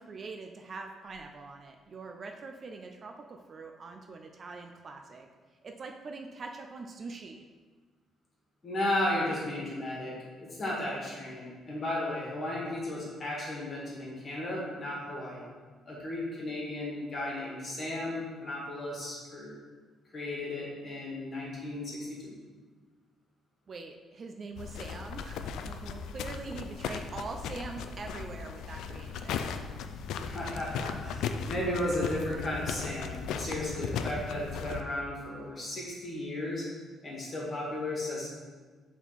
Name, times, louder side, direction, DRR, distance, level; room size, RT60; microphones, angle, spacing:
voice 1, 0.0-5.3 5.6-7.4 23.7-29.5, right 3 dB, 35° right, 4 dB, 0.4 m, -43 dB
voice 2, 8.6-15.4 15.9-19.5 20.1-22.3 30.2-36.7 37.0-38.3, left 1 dB, 30° left, -4 dB, 1.9 m, -34 dB
sound 1, 24.6-34.8, left 6 dB, 80° left, 0.4 m, -37 dB
7.1 x 3.7 x 4.2 m, 1.4 s
cardioid pair, 140°, 0 cm